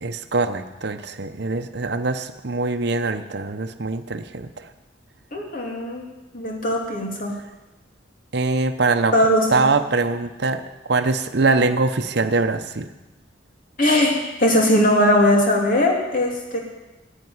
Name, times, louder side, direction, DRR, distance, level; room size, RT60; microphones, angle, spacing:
voice 1, 0.0-4.7 8.3-9.1 9.5-12.9, right 3 dB, 65° right, 8 dB, 0.8 m, -23 dB
voice 2, 5.3-6.1 6.3-7.3 9.1-9.6 13.8-16.6, left 1 dB, 50° left, 0 dB, 2.7 m, -19 dB
10.5 x 8.9 x 9.5 m, 1.1 s
head